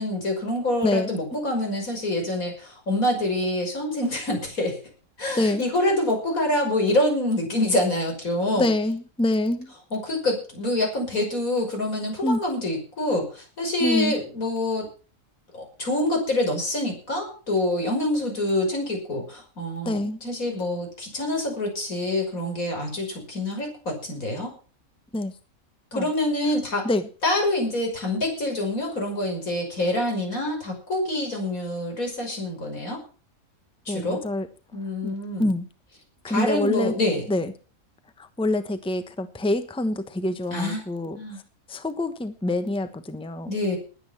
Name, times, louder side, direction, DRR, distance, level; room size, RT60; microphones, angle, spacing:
voice 1, 0.0-4.8 5.2-8.7 9.9-14.9 15.5-24.5 25.9-26.9 27.2-33.0 33.9-34.2 34.7-35.5 36.3-37.3 40.5-40.8 41.2-41.4 43.5-43.8, left 1 dB, 85° left, 2 dB, 6.5 m, -26 dB
voice 2, 8.6-9.7 12.2-12.4 13.8-14.1 19.8-20.2 25.1-25.3 25.9-26.1 26.8-27.1 33.9-34.5 35.0-35.6 36.2-36.9 37.3-37.5 38.2-41.2 41.7-43.5, left 1 dB, 5° left, 10 dB, 1.0 m, -26 dB
19.5 x 8.9 x 5.9 m, 0.37 s
omnidirectional pair, 1.4 m